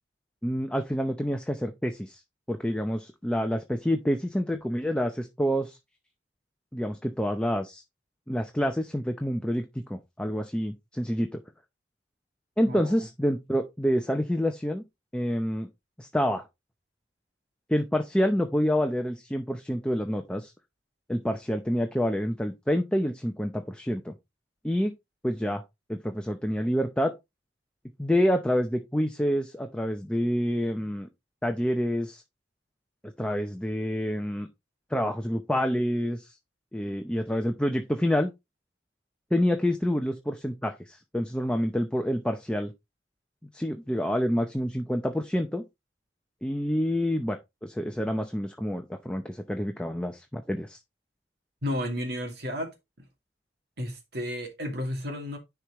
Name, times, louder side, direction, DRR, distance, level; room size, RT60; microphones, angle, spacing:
voice 1, 0.4-2.2 2.5-5.8 6.7-7.8 8.3-11.4 12.6-14.8 15.1-15.7 16.0-16.4 17.7-20.5 21.1-24.1 24.6-24.9 25.2-25.6 25.9-27.1 28.0-31.1 31.4-32.2 33.2-34.5 34.9-36.3 36.7-38.3 39.3-42.7 43.5-45.6 46.4-50.8, equal, 5° left, 0.6 m, -27 dB
voice 2, 51.6-52.7 53.8-55.4, left 1 dB, 60° right, 2.4 m, -32 dB
10.5 x 4.7 x 3.1 m
head